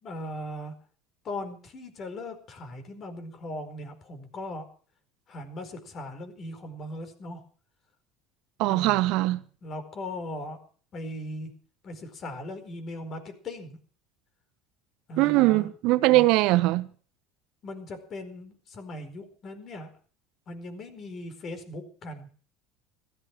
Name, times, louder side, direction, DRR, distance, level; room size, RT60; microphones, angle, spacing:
voice 1, 0.0-0.7 1.2-4.6 5.3-7.4 8.7-9.1 9.6-10.6 10.9-11.5 11.8-13.8 15.1-15.7 16.1-16.3 17.6-19.9 20.5-22.3, left 1 dB, 45° left, 4.6 m, -38 dB
voice 2, 8.6-9.4 15.2-16.9, right 19 dB, 65° right, 1.1 m, -21 dB
16.0 x 13.5 x 6.1 m
hypercardioid pair, 80°, 0 cm